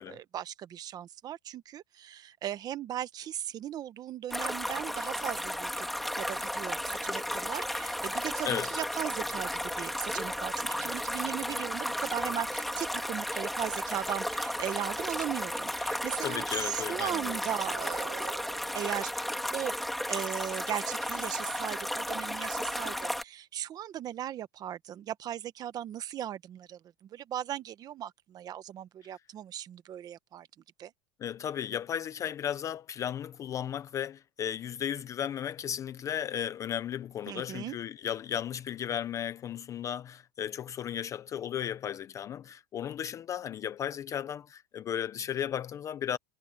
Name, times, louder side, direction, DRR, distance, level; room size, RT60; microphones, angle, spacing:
voice 1, 0.0-5.9 6.2-19.3 19.5-19.7 20.1-30.5 30.8-30.9 37.3-37.8, right 11 dB, 25° right, 0.9 m, -38 dB
sound 1, 4.3-23.2, equal, ahead, 1.8 m, -34 dB
voice 2, 16.2-17.4 31.2-46.2, left 9 dB, 20° left, 0.4 m, -35 dB
cardioid pair, 175°, 15 cm